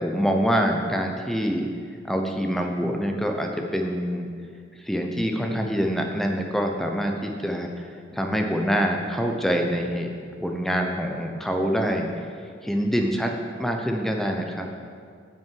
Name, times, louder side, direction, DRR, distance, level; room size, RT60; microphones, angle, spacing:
voice 1, 0.0-1.7 2.0-4.3 4.8-7.9 8.1-12.1 12.6-14.7, equal, ahead, 3 dB, 0.8 m, -25 dB
9.2 x 5.9 x 7.7 m, 2.1 s
head